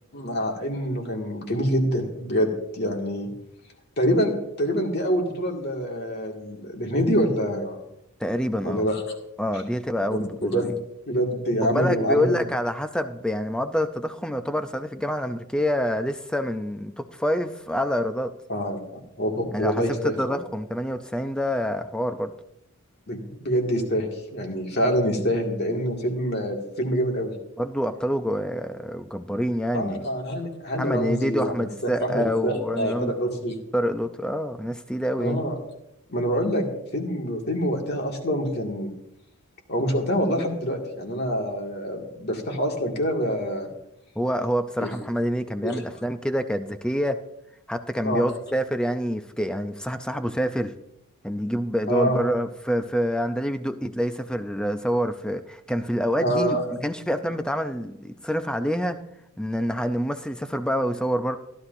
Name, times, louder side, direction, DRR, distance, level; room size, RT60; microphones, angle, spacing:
voice 1, 0.1-3.3 4.0-7.8 8.6-9.0 10.4-10.7 11.1-12.4 18.5-18.8 19.2-20.4 23.1-27.3 29.7-31.5 32.0-33.6 35.2-35.6 36.1-36.6 36.9-38.9 39.7-43.7 44.8-44.9 45.6-45.8 48.0-48.2 51.9-52.2 56.2-56.6, equal, 45° left, 1 dB, 2.0 m, -26 dB
voice 2, 8.2-8.9 9.4-10.7 11.6-18.3 19.5-19.8 20.2-22.3 27.6-30.1 30.8-33.1 33.7-35.4 44.2-47.2 47.7-50.7 51.2-56.6 56.8-59.0 59.4-61.4, equal, 5° left, 9 dB, 0.4 m, -27 dB
15.0 x 11.5 x 2.6 m, 0.83 s
head